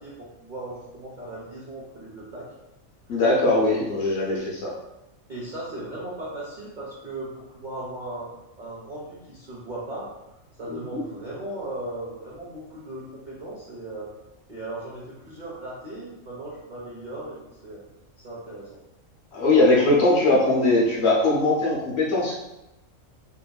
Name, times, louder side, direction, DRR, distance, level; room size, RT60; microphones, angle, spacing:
voice 1, 0.0-2.5 3.1-3.2 5.3-8.3 8.6-10.1 10.6-14.2 14.5-17.8 18.2-18.7, right 1 dB, 60° right, -6 dB, 0.5 m, -37 dB
voice 2, 3.1-4.7 10.7-11.0 19.3-22.3, left 2 dB, 65° left, -4 dB, 0.7 m, -21 dB
2.8 x 2.4 x 2.2 m, 0.93 s
omnidirectional pair, 1.4 m